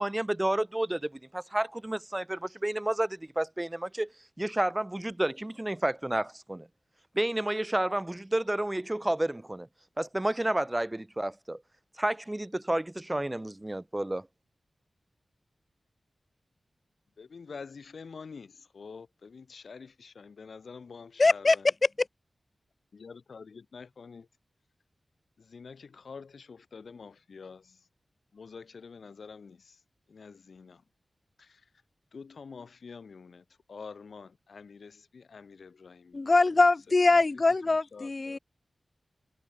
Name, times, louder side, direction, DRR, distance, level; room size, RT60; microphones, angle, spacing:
voice 1, 0.0-4.1 4.4-6.7 7.1-9.7 10.0-11.6 12.0-14.3, right 1 dB, 15° right, 1.4 m, -30 dB
voice 2, 17.2-21.7 22.9-24.3 25.4-27.8 28.3-29.8 30.1-30.8 31.4-31.6 32.1-36.2 37.1-37.2 37.9-38.4, left 5 dB, 80° left, 1.3 m, -47 dB
voice 3, 21.2-21.6 21.8-22.1 36.1-38.4, left 3 dB, 40° left, 0.5 m, -23 dB
wide cardioid pair, 100°, 0 cm